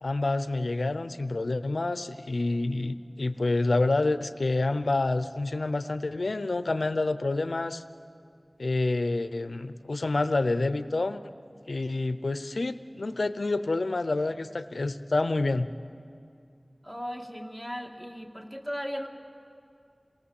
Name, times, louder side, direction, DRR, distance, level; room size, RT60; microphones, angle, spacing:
voice 1, 0.0-7.8 8.6-11.3 11.7-15.7, left 2 dB, 85° left, 12 dB, 0.7 m, -28 dB
voice 2, 16.8-19.1, equal, 10° right, 2 dB, 2.2 m, -36 dB
28.0 x 19.0 x 7.2 m, 2.4 s
wide cardioid pair, 50°, 0 cm